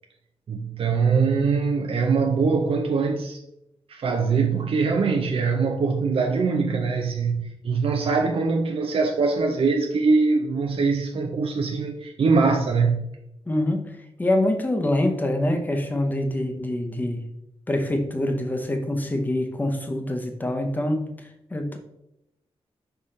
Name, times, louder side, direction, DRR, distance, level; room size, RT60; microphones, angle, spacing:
voice 1, 0.5-3.4 3.9-13.0, right 4 dB, 60° right, 3 dB, 0.6 m, -22 dB
voice 2, 13.5-13.8 14.2-17.2 17.7-21.1 21.5-21.8, left 1 dB, 15° left, 5 dB, 0.7 m, -25 dB
5.7 x 5.4 x 3.2 m, 0.84 s
wide cardioid pair, 165°, 11 cm